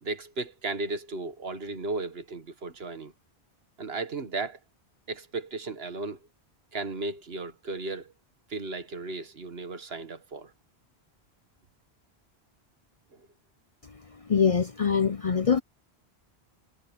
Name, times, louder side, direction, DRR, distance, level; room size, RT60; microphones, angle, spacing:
voice 1, 0.0-3.1 3.8-4.6 5.1-6.2 6.7-8.1 8.5-10.5 13.1-13.3, right 3 dB, 65° right, 1.7 m, -35 dB
voice 2, 14.3-15.6, left 6 dB, 40° left, 0.6 m, -23 dB
omnidirectional pair, 1.1 m